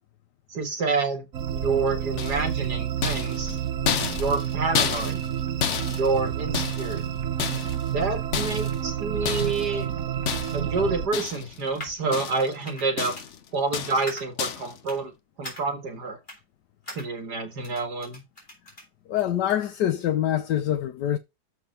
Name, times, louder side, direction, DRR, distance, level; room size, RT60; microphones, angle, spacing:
voice 1, 0.5-3.6 4.1-5.2 5.9-7.1 7.8-9.9 10.5-13.2 13.5-15.1 15.4-16.2 16.9-18.2, right 4 dB, 75° right, 2.5 m, -28 dB
sound 1, 1.3-11.1, right 9 dB, 60° right, 1.4 m, -29 dB
sound 2, 2.2-2.6 3.0-5.4 5.6-7.0 7.4-7.9 8.3-8.8 9.3-9.7 10.3-10.7 11.1-11.6 11.9-12.6 13.0-13.4 13.7-14.1 14.4-14.7, left 8 dB, 55° left, 1.0 m, -30 dB
sound 3, 11.2-12.0 12.6-12.9 13.1-13.3 14.0-14.3 14.8-15.0 15.4-15.6 16.3-16.4 16.8-17.1 17.6-18.9 19.2-19.7, left 1 dB, 35° left, 4.1 m, -41 dB
voice 2, 19.1-21.2, left 11 dB, 90° left, 1.3 m, -25 dB
7.1 x 5.9 x 5.6 m
omnidirectional pair, 1.7 m